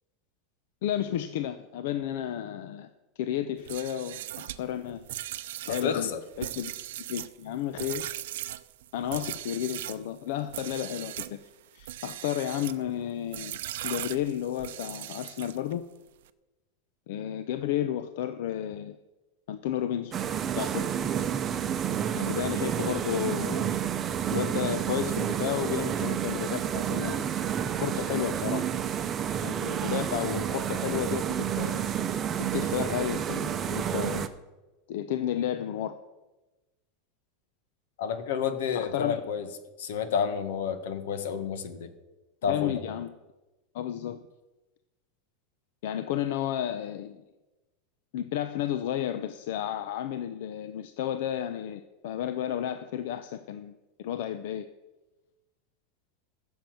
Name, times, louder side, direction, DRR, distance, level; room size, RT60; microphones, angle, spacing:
voice 1, 0.8-2.9 3.2-5.1 5.6-6.1 6.4-6.7 7.1-8.1 8.9-11.4 11.7-13.6 13.8-15.9 17.1-19.0 19.5-20.2 20.5-20.9 22.1-23.7 24.3-27.3 27.7-28.7 29.4-31.8 32.4-34.3 34.9-36.0 38.7-39.2 42.5-43.1 43.7-44.2 45.8-47.2 48.1-54.7, left 11 dB, 65° left, 11 dB, 0.7 m, -32 dB
sound 1, 3.6-10.0 10.5-11.4 11.8-12.8 13.3-15.7, right 14 dB, 75° right, 0.6 m, -38 dB
voice 2, 5.7-6.2 38.0-39.5 39.8-41.9 42.4-42.7, left 7 dB, 80° left, 10 dB, 1.7 m, -30 dB
sound 2, 20.1-34.3, right 9 dB, 20° right, 0.7 m, -30 dB
15.0 x 7.2 x 7.8 m, 1.1 s
supercardioid pair, 170°, 0 cm